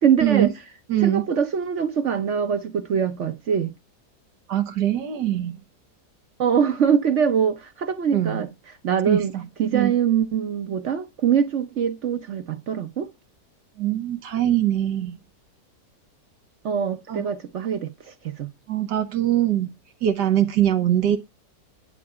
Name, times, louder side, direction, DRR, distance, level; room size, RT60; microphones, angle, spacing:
voice 1, 0.0-0.5 1.0-3.7 6.4-8.5 8.8-9.3 9.6-13.1 16.6-18.5, right 7 dB, 55° right, 1.0 m, -23 dB
voice 2, 0.9-1.3 4.5-5.6 8.1-8.5 9.1-9.4 9.7-9.9 13.8-15.2 17.1-17.3 18.7-19.7 20.0-21.2, right 12 dB, 85° right, 1.7 m, -22 dB
11.0 x 8.3 x 4.8 m
omnidirectional pair, 1.8 m